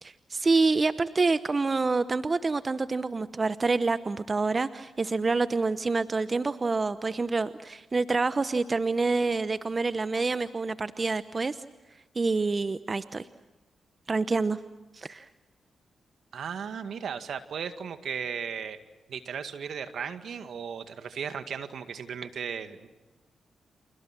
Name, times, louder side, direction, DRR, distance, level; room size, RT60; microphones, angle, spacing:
voice 1, 0.0-11.6 12.1-13.3 14.1-14.6 14.9-15.3, right 3 dB, 40° right, 13 dB, 0.9 m, -27 dB
voice 2, 16.3-18.8 19.1-22.9, right 7 dB, 75° right, 10 dB, 2.0 m, -36 dB
30.0 x 28.0 x 6.1 m, 1.1 s
supercardioid pair, 50°, 0 cm